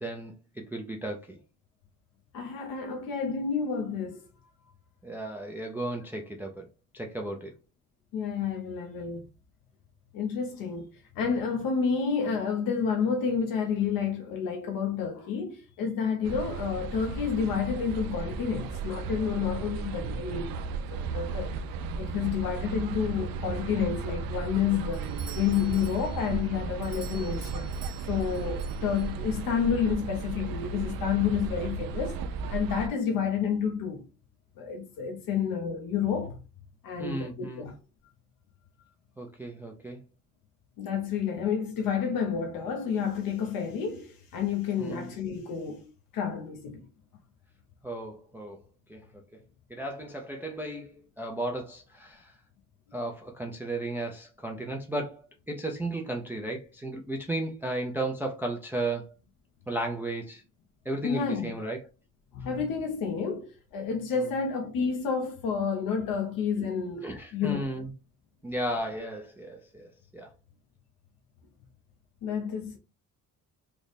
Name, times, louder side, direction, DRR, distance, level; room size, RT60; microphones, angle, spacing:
voice 1, 0.0-1.4 5.0-6.7 6.9-7.5 37.0-37.7 39.2-40.0 44.8-45.1 47.8-48.6 48.9-49.0 49.7-52.3 52.9-55.2 55.5-59.1 59.7-60.4 60.9-61.8 64.1-64.3 67.0-67.9 68.4-70.3, right 1 dB, 5° right, 0.3 m, -34 dB
voice 2, 2.3-4.2 8.1-9.3 10.1-10.9 11.2-21.6 22.0-27.7 28.1-32.2 32.5-34.1 34.6-36.4 36.8-37.8 40.8-46.9 61.0-61.5 62.3-67.1 67.3-67.7 72.2-72.8, left 6 dB, 80° left, 0.7 m, -30 dB
sound 1, 16.2-32.9, right 5 dB, 90° right, 0.5 m, -35 dB
Doorbell, 24.9-29.4, right 7 dB, 50° right, 0.7 m, -49 dB
3.3 x 2.0 x 3.9 m
cardioid pair, 160°, 34 cm